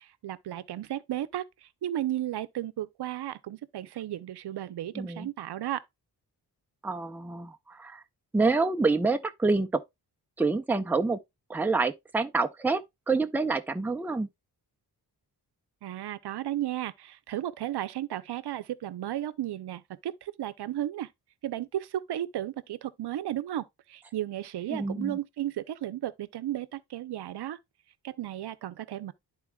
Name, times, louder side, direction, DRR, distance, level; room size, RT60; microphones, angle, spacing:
voice 1, 0.0-5.8 15.8-21.1 21.4-27.6 28.0-29.1, right 12 dB, 80° right, 0.7 m, -34 dB
voice 2, 4.9-5.3 6.8-8.0 8.3-9.8 10.4-11.2 11.5-14.3 24.7-25.2, right 3 dB, 5° right, 0.5 m, -27 dB
12.0 x 4.5 x 2.2 m
wide cardioid pair, 150°, 39 cm